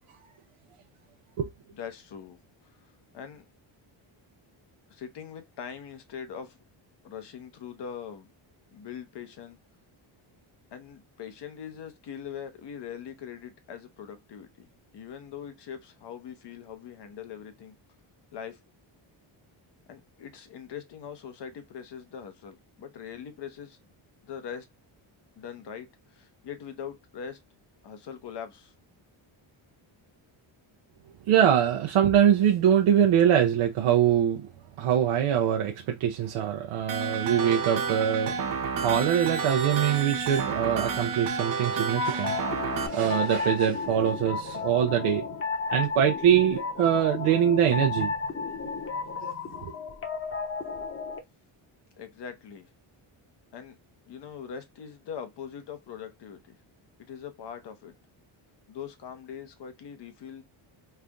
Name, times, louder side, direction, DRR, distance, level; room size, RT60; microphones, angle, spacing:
voice 1, 1.7-2.4 3.1-3.4 4.9-6.6 7.0-8.3 8.7-9.6 10.7-14.7 14.9-17.8 18.3-18.6 19.9-23.8 24.2-24.7 25.4-27.4 27.8-28.7 52.0-52.7 53.5-53.7 54.1-56.6 57.0-57.9 58.7-60.4, left 7 dB, 55° left, 1.0 m, -42 dB
voice 2, 31.3-34.5 34.8-45.3 45.7-48.1 49.2-49.3 49.6-49.7, right 9 dB, 80° right, 0.7 m, -23 dB
sound 1, 36.9-42.9, right 5 dB, 45° right, 0.7 m, -30 dB
sound 2, 42.0-51.2, left 5 dB, 25° left, 1.0 m, -33 dB
3.3 x 2.5 x 3.3 m
cardioid pair, 140°, 49 cm